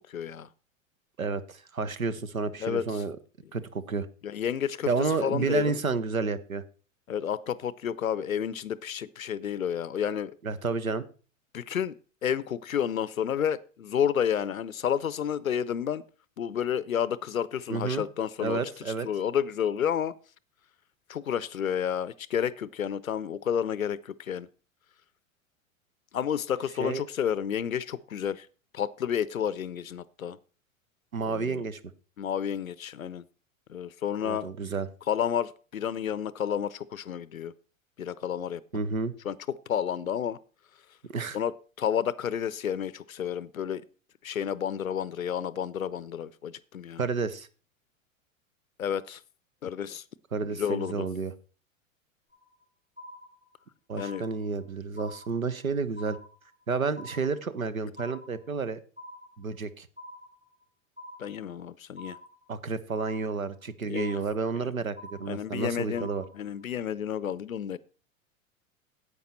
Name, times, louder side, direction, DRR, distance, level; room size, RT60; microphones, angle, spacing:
voice 1, 0.1-0.5 2.6-3.0 4.2-4.9 5.2-5.8 7.1-10.4 11.5-11.9 12.2-16.0 16.4-18.6 18.9-20.1 21.1-24.5 26.1-28.5 28.7-30.4 31.3-31.6 32.2-33.2 33.7-34.5 35.1-37.5 38.0-38.6 39.2-40.4 41.3-43.8 44.2-47.0 48.8-49.2 49.6-50.0 50.4-51.1 54.0-54.2 61.2-62.2 63.9-64.2 64.6-64.7 65.3-66.1 66.3-67.8, left 8 dB, 85° left, 19 dB, 0.5 m, -30 dB
voice 2, 1.2-3.2 3.5-4.1 4.9-6.6 10.4-11.1 17.7-18.0 18.4-19.1 26.8-27.0 31.1-31.8 34.2-34.9 38.7-39.1 41.1-41.4 47.0-47.5 50.3-51.3 53.9-56.2 56.7-58.8 59.4-59.9 62.5-66.2, right 4 dB, 85° right, 15 dB, 0.9 m, -30 dB
sound 1, 52.3-52.6 53.0-53.6 54.0-54.6 55.0-55.6 56.0-56.6 57.0-57.6 58.0-58.6 59.0-59.6 60.0-60.6 61.0-61.6 62.0-62.6 63.0-63.6 64.0-64.6 65.0-65.6 66.0-66.6, left 1 dB, 15° right, 3.7 m, -47 dB
10.5 x 8.2 x 4.2 m, 0.37 s
figure-of-eight pair, 90°, 41 cm